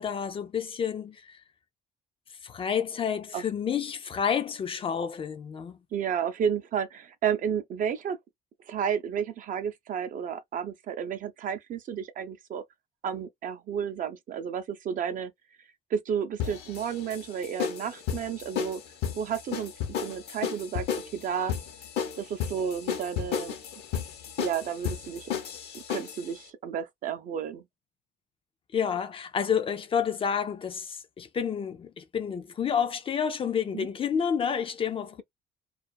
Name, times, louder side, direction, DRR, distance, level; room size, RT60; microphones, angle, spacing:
voice 1, 0.0-1.4 2.4-5.8 28.7-35.2, left 7 dB, 30° left, 0.4 m, -29 dB
voice 2, 5.9-8.2 8.7-12.6 13.0-15.3 15.6-18.8 19.2-19.7 20.0-21.5 22.1-23.6 24.4-25.3 25.7-27.6 33.7-33.9, right 8 dB, 50° right, 0.5 m, -32 dB
sound 1, 16.4-26.3, left 8 dB, 75° left, 0.8 m, -33 dB
2.4 x 2.4 x 2.2 m
cardioid pair, 110°, 17 cm